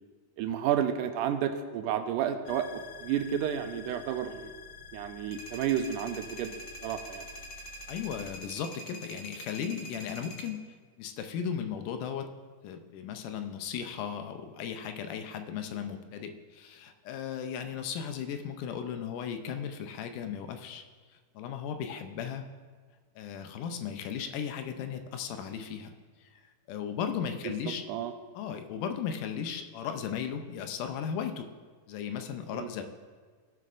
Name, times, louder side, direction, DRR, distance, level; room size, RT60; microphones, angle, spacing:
voice 1, 0.4-4.5 4.9-6.6 6.8-7.3 27.4-28.1 32.5-32.7, right 9 dB, 85° right, 8 dB, 2.2 m, -31 dB
sound 1, 2.5-8.3, left 5 dB, 75° left, 1.3 m, -48 dB
sound 2, 5.3-10.5, equal, 50° left, 1.4 m, -45 dB
voice 2, 7.9-10.6 11.0-12.3 12.6-20.8 21.4-22.4 23.2-25.9 26.3-26.4 26.7-27.8 28.4-31.5 31.9-32.8, left 8 dB, 90° left, 7 dB, 2.3 m, -36 dB
15.5 x 7.6 x 2.5 m, 1.5 s
omnidirectional pair, 3.6 m